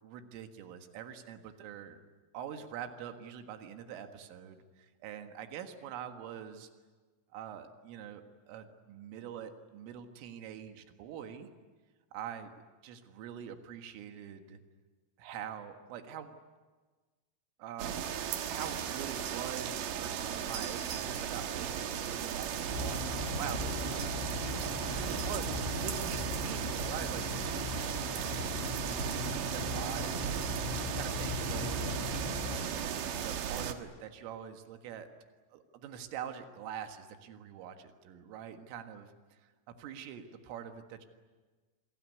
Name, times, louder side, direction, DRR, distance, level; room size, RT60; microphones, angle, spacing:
voice 1, 0.0-2.0 2.3-6.7 7.3-8.2 8.5-11.5 12.1-12.5 12.8-14.6 15.2-16.4 17.6-18.2 18.5-28.5 28.8-32.2 32.8-35.1 35.5-39.5 39.8-41.1, right 8 dB, 90° right, 6 dB, 4.2 m, -45 dB
sound 1, 17.8-33.7, right 8 dB, 65° right, 2.4 m, -36 dB
sound 2, 22.7-32.7, left 4 dB, 90° left, 7.1 m, -39 dB
27.5 x 22.5 x 9.6 m, 1.3 s
omnidirectional pair, 5.6 m